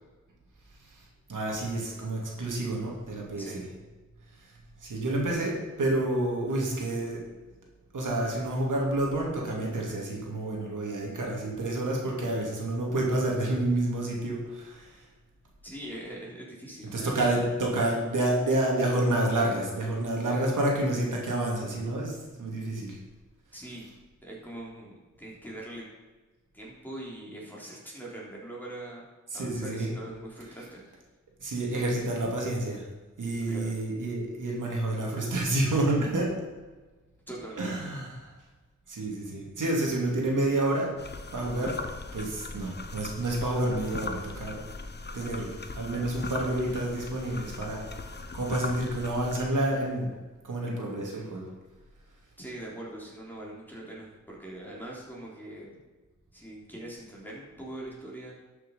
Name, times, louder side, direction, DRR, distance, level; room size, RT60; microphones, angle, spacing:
voice 1, 1.3-3.6 4.4-4.5 4.8-7.2 7.9-15.0 16.8-23.0 29.3-29.9 31.4-32.8 33.2-36.3 37.5-38.3 38.9-40.9 41.3-41.8 42.1-44.6 45.1-50.1 50.4-51.5, right 1 dB, 85° right, -2 dB, 2.8 m, -29 dB
voice 2, 15.6-17.3 23.5-23.9 24.2-25.9 26.5-29.1 29.3-30.8 33.5-33.7 37.3-37.9 52.4-55.8 56.3-58.3, right 1 dB, 5° left, -5 dB, 3.7 m, -42 dB
sound 1, 41.0-49.5, left 3 dB, 35° left, 0.9 m, -39 dB
12.0 x 6.5 x 5.6 m, 1.3 s
wide cardioid pair, 85°, 30 cm